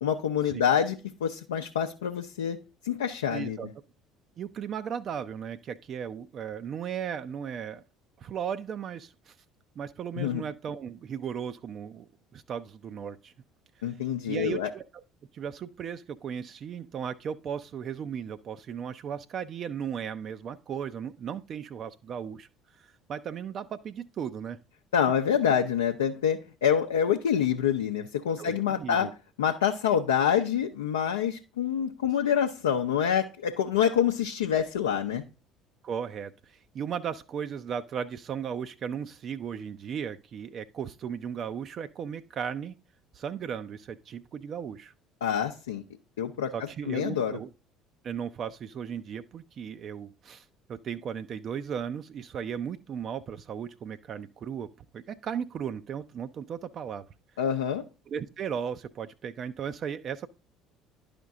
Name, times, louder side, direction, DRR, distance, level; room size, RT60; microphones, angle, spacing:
voice 1, 0.0-2.6 2.8-3.6 10.2-10.4 13.8-14.7 24.9-29.1 29.4-35.2 45.2-45.8 46.2-46.5 46.9-47.4 57.4-57.8, left 8 dB, 75° left, 0.5 m, -26 dB
voice 2, 3.3-3.7 4.4-7.8 8.2-9.3 9.8-13.3 13.8-14.0 14.3-15.0 15.3-22.5 22.7-24.6 28.4-29.1 35.8-42.7 43.1-44.9 46.5-47.5 48.0-57.1 58.1-60.3, right 8 dB, 45° right, 0.4 m, -36 dB
11.0 x 5.1 x 3.6 m
figure-of-eight pair, 60°, 0 cm